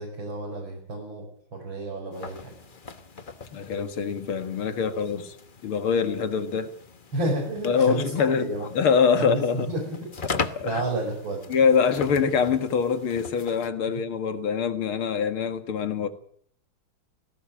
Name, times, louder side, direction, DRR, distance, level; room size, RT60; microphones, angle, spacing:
voice 1, 0.0-2.5 4.9-5.0 7.1-8.7 9.2-10.4 10.6-11.4, right 1 dB, 70° right, 6.0 m, -31 dB
sound 1, 2.1-13.7, left 4 dB, 35° left, 0.9 m, -39 dB
voice 2, 3.5-5.4 5.6-6.7 7.6-9.7 10.3-10.8 11.5-16.1, left 6 dB, 90° left, 2.6 m, -24 dB
19.0 x 17.0 x 8.7 m
omnidirectional pair, 2.3 m